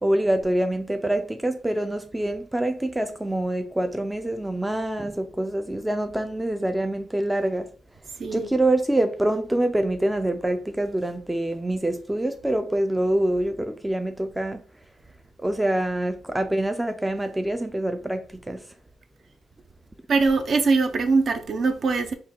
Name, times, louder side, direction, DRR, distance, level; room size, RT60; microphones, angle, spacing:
voice 1, 0.0-7.7 8.3-14.6 15.4-18.6, right 1 dB, 10° right, 0.4 m, -25 dB
voice 2, 20.1-22.1, right 4 dB, 50° right, 0.6 m, -22 dB
4.4 x 2.2 x 3.6 m
cardioid pair, 90°, 0 cm